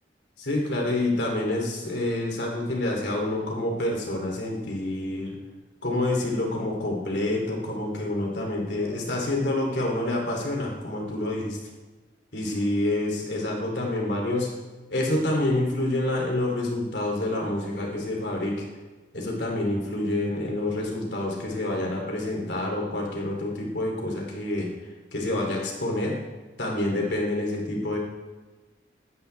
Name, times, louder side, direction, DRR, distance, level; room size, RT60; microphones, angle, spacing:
voice 1, 0.4-5.4 5.8-11.6 12.3-14.5 14.9-18.6 19.1-24.7 25.1-26.1 26.6-28.0, left 1 dB, 65° left, -1 dB, 3.0 m, -27 dB
17.5 x 13.5 x 3.4 m, 1.2 s
head